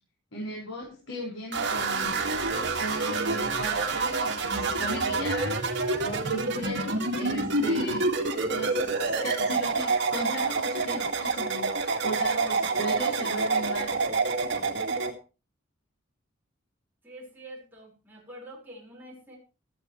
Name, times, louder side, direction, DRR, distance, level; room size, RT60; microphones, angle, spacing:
voice 1, 0.3-2.5 2.8-8.1 8.5-13.9, equal, 90° left, -2 dB, 5.7 m, -37 dB
sound 1, 1.5-15.1, right 3 dB, 60° right, 2.1 m, -27 dB
voice 2, 17.0-19.4, right 1 dB, 10° right, -3 dB, 5.2 m, -46 dB
17.0 x 13.0 x 3.3 m, 0.33 s
head